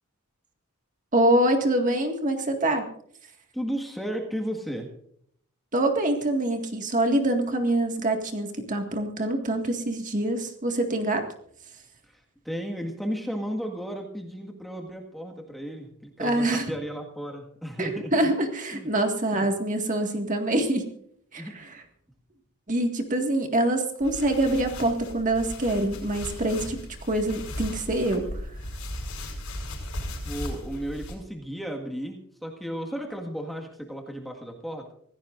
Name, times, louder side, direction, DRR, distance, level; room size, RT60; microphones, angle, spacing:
voice 1, 1.1-2.8 5.7-11.3 16.2-16.7 17.8-20.9 21.3-21.8 22.7-26.8 27.1-28.4, right 1 dB, 35° right, 4 dB, 2.0 m, -25 dB
voice 2, 3.5-4.9 12.1-12.2 12.4-18.4 18.7-18.9 19.3-19.5 21.4-21.5 30.2-34.9, equal, ahead, 1 dB, 1.7 m, -34 dB
sound 1, 24.0-31.2, left 1 dB, 85° left, 5.0 m, -37 dB
25.5 x 16.0 x 2.6 m, 0.64 s
head